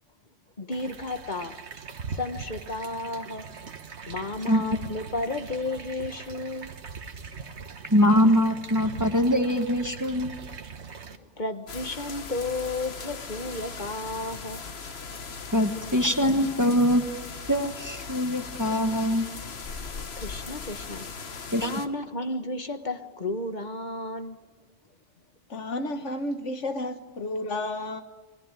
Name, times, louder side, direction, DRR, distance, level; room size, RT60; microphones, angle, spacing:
voice 1, 0.6-1.6 2.1-3.5 4.1-6.7 9.1-9.2 10.9-14.6 19.8-24.4, left 2 dB, 40° left, 1.6 m, -33 dB
sound 1, 0.7-11.2, right 5 dB, 65° right, 1.6 m, -41 dB
voice 2, 7.9-10.3 15.5-17.0 17.5-19.3 21.5-21.7, equal, 15° right, 1.5 m, -23 dB
sound 2, 11.7-21.9, left 5 dB, 55° left, 1.5 m, -39 dB
voice 3, 25.5-28.0, left 1 dB, 70° left, 1.8 m, -31 dB
29.0 x 22.0 x 9.1 m
omnidirectional pair, 1.3 m